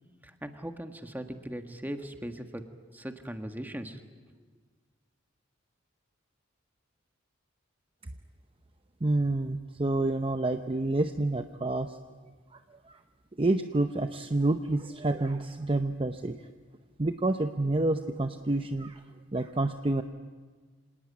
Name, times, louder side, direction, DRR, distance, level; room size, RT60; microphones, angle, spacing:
voice 1, 0.2-2.6 2.9-4.0, equal, 10° right, 6 dB, 1.6 m, -39 dB
voice 2, 9.0-11.9 13.4-16.4 17.0-19.0 19.3-20.0, right 2 dB, 25° right, 7 dB, 0.7 m, -28 dB
26.5 x 18.5 x 9.5 m, 1.5 s
head